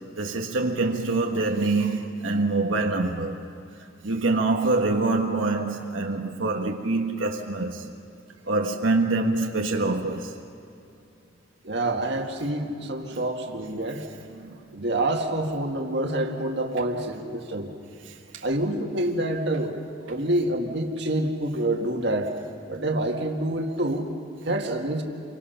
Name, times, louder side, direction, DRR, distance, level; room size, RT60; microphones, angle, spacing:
voice 1, 0.2-3.4 4.0-7.8 8.5-10.4 14.3-14.6 18.0-18.4, right 3 dB, 90° right, 1.4 m, -25 dB
voice 2, 11.6-14.1 14.7-17.7 18.4-19.8 20.1-22.3 22.7-24.0 24.4-25.0, right 1 dB, 60° right, 1.9 m, -27 dB
28.5 x 24.0 x 5.7 m
head